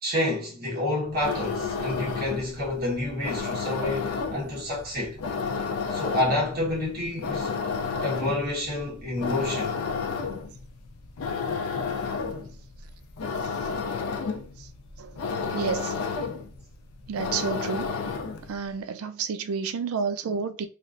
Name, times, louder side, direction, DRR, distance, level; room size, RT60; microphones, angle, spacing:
voice 1, 0.0-5.2 5.9-7.5 8.0-9.8, left 1 dB, 45° right, 1.2 m, -29 dB
sound 1, 1.1-18.6, left 5 dB, 90° left, 0.4 m, -32 dB
voice 2, 15.5-15.9 17.1-17.9 18.5-20.7, right 5 dB, 85° right, 0.4 m, -30 dB
3.2 x 2.4 x 2.5 m
head